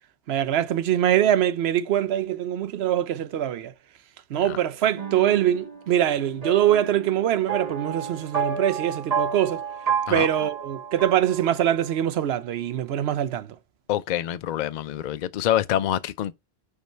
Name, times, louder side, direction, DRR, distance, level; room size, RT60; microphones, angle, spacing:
voice 1, 0.3-3.7 4.3-9.6 10.1-13.6, right 11 dB, 75° right, 0.9 m, -23 dB
sound 1, 5.0-11.9, right 7 dB, 40° right, 1.2 m, -31 dB
voice 2, 13.9-16.3, left 11 dB, 55° left, 0.5 m, -26 dB
5.3 x 4.6 x 4.4 m
omnidirectional pair, 1.1 m